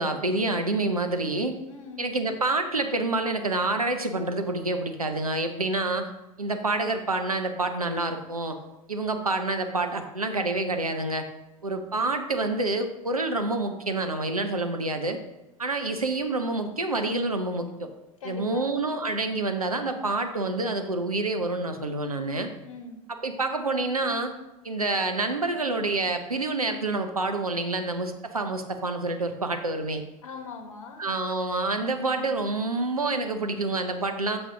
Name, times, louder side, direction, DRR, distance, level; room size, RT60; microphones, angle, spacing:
voice 1, 0.0-1.6 2.0-6.1 6.4-8.6 8.9-11.3 11.6-15.2 15.6-17.9 18.2-22.5 23.1-24.3 24.6-30.0 31.0-34.4, right 2 dB, 85° right, 6 dB, 0.7 m, -27 dB
voice 2, 1.6-2.1 18.2-18.8 22.6-23.0 30.2-31.1, left 5 dB, 65° left, 6 dB, 1.0 m, -41 dB
6.5 x 6.0 x 3.7 m, 0.99 s
figure-of-eight pair, 80°, 18 cm